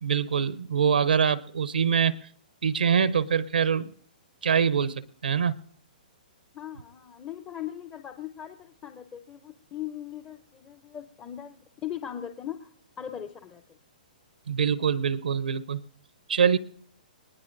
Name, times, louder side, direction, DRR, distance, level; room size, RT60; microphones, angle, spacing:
voice 1, 0.0-2.2 2.6-3.9 4.4-4.9 5.2-5.5 14.5-15.8 16.3-16.6, right 7 dB, 85° right, 18 dB, 0.6 m, -24 dB
voice 2, 6.5-12.7 13.0-13.8, left 10 dB, 20° left, 9 dB, 0.5 m, -39 dB
22.5 x 19.5 x 2.6 m, 0.63 s
hypercardioid pair, 135°, 5 cm